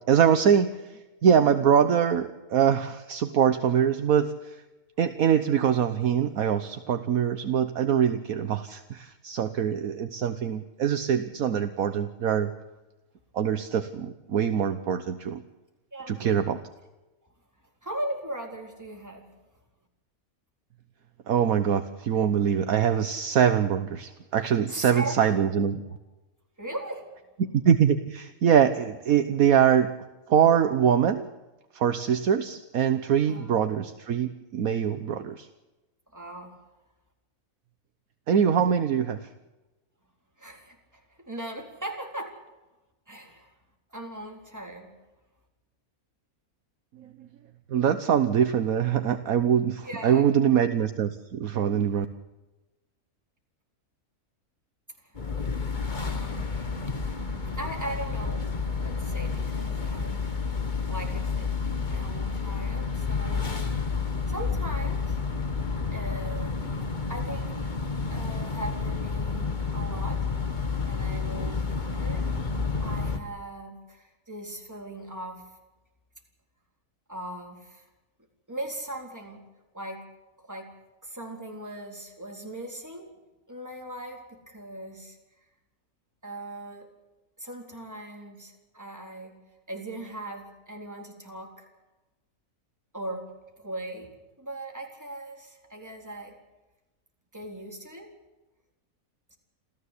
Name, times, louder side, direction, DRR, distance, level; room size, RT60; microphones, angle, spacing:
voice 1, 0.1-4.6 5.0-12.5 13.3-15.4 16.1-16.6 21.3-25.8 27.4-29.9 30.3-31.3 31.7-35.5 38.3-39.3 47.0-47.1 47.7-52.1, right 8 dB, 70° right, 9 dB, 1.4 m, -23 dB
voice 2, 15.9-16.3 17.8-19.3 24.7-25.5 26.6-27.1 33.3-33.6 36.1-36.6 40.4-42.4 43.1-43.5 43.9-44.9 49.8-50.3 55.0-55.2 55.8-56.5 57.5-58.5 58.8-60.3 60.9-61.5 61.9-63.6 64.3-65.2 65.9-66.7 67.1-67.5 68.1-70.3 70.8-72.3 72.8-75.5 77.1-77.9 78.5-79.4 79.7-80.1 80.4-80.7 81.0-83.1 83.5-85.2 86.2-86.9 87.4-89.4 89.7-91.7 92.9-96.4 97.3-98.1, right 1 dB, 10° right, 1 dB, 4.1 m, -39 dB
sound 1, 55.1-73.2, left 4 dB, 30° left, 1.8 m, -30 dB
27.5 x 15.0 x 8.3 m, 1.1 s
omnidirectional pair, 1.5 m